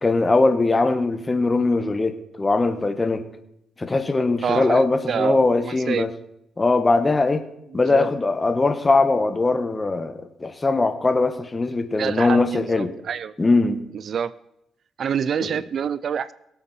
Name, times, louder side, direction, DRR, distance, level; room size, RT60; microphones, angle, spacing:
voice 1, 0.0-3.3 3.8-6.1 6.6-7.5 7.7-12.9 13.4-13.9 15.4-15.6, left 3 dB, 25° left, 9 dB, 1.4 m, -21 dB
voice 2, 4.4-6.1 7.9-8.1 12.0-13.3 13.9-14.3 15.0-16.3, right 7 dB, 55° right, 18 dB, 0.5 m, -27 dB
22.0 x 8.7 x 4.3 m, 0.82 s
cardioid pair, 90°, 0 cm